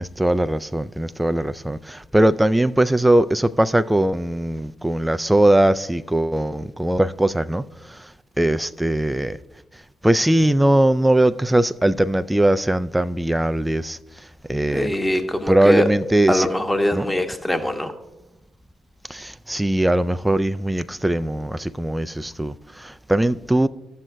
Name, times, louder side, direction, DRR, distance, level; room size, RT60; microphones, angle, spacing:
voice 1, 0.0-7.6 7.9-8.0 8.4-9.4 10.0-14.0 14.5-14.9 15.5-16.5 16.9-17.1 19.1-23.7, right 1 dB, 10° right, 0.3 m, -20 dB
voice 2, 14.7-15.9 16.3-17.9, left 1 dB, 10° left, 0.9 m, -22 dB
13.0 x 7.3 x 2.2 m
hypercardioid pair, 45°, 0 cm